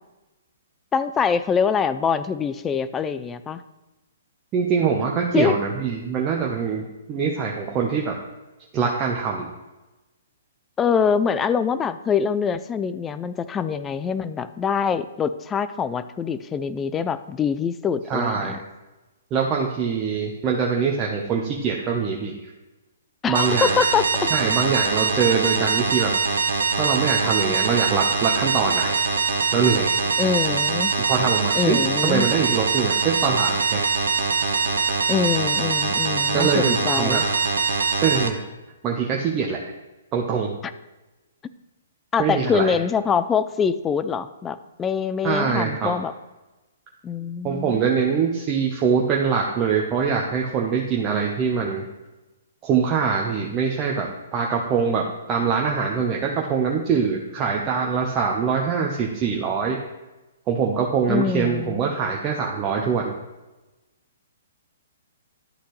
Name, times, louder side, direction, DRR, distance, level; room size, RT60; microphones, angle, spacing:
voice 1, 0.9-3.6 5.3-5.5 10.8-18.6 23.2-24.0 30.2-30.9 31.5-32.3 35.1-37.2 42.1-46.1 47.0-47.9 61.1-61.8, left 6 dB, 15° left, 12 dB, 0.4 m, -24 dB
voice 2, 4.5-8.2 8.7-9.5 18.1-18.6 19.3-22.5 23.3-23.8 24.3-26.1 26.8-29.0 29.5-30.0 31.1-33.8 36.3-37.2 38.0-38.4 38.8-39.6 40.1-40.6 42.2-42.7 45.2-45.9 47.4-51.8 52.6-59.8 60.5-63.1, right 6 dB, 25° right, -1 dB, 0.8 m, -23 dB
sound 1, 23.3-38.3, right 5 dB, 75° right, 0.8 m, -23 dB
11.5 x 4.2 x 3.2 m, 1.1 s
hypercardioid pair, 130°, 0 cm